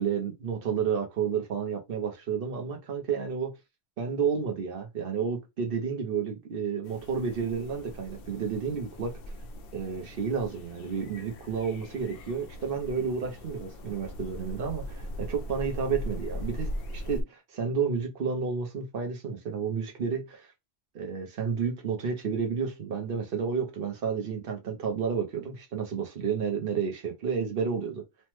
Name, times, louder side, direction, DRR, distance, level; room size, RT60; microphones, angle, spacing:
voice 1, 0.0-3.5 4.0-9.1 9.7-20.5 20.9-28.0, right 6 dB, 60° right, 0.9 m, -31 dB
sound 1, 6.8-17.2, equal, 60° left, 0.7 m, -40 dB
3.1 x 2.1 x 3.0 m
omnidirectional pair, 1.2 m